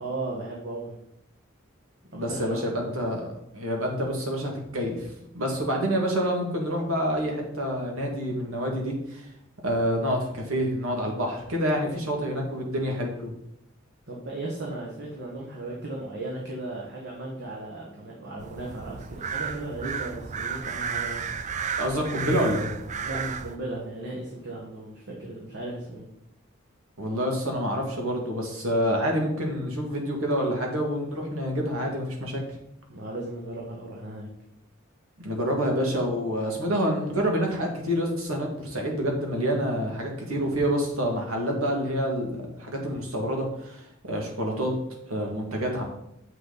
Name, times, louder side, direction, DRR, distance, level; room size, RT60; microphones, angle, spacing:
voice 1, 0.0-1.0 2.1-2.9 14.1-21.2 23.0-26.1 32.9-34.3, right 2 dB, 60° right, -3 dB, 1.5 m, -36 dB
voice 2, 2.1-3.3 3.5-5.1 5.3-9.3 9.6-13.3 21.8-22.7 27.0-32.4 35.2-44.7 45.1-45.9, equal, 90° right, 1 dB, 2.1 m, -27 dB
sound 1, 18.4-23.6, right 6 dB, 35° right, 0.4 m, -33 dB
7.6 x 6.4 x 4.0 m, 0.79 s
head